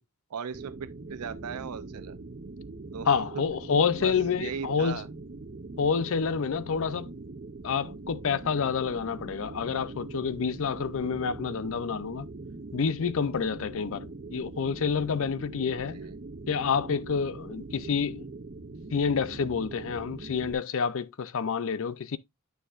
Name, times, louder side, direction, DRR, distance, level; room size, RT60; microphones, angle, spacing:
voice 1, 0.3-2.2 2.9-3.4 4.0-5.1 15.9-16.2, right 6 dB, 85° right, 0.5 m, -38 dB
sound 1, 0.5-20.5, right 3 dB, 40° right, 0.7 m, -42 dB
voice 2, 3.1-5.0 5.8-7.1 7.6-12.3 12.7-16.0 16.5-18.3 18.9-22.2, left 6 dB, 65° left, 0.5 m, -28 dB
9.2 x 6.7 x 2.4 m
head